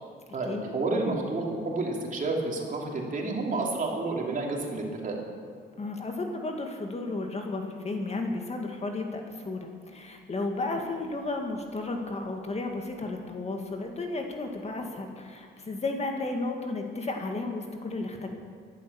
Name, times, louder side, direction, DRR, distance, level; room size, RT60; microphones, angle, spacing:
voice 1, 0.3-5.1, right 2 dB, 40° right, -1 dB, 3.3 m, -30 dB
voice 2, 5.8-18.3, left 2 dB, 35° left, 3 dB, 1.9 m, -33 dB
14.0 x 11.5 x 7.1 m, 2.2 s
cardioid pair, 90°, 20 cm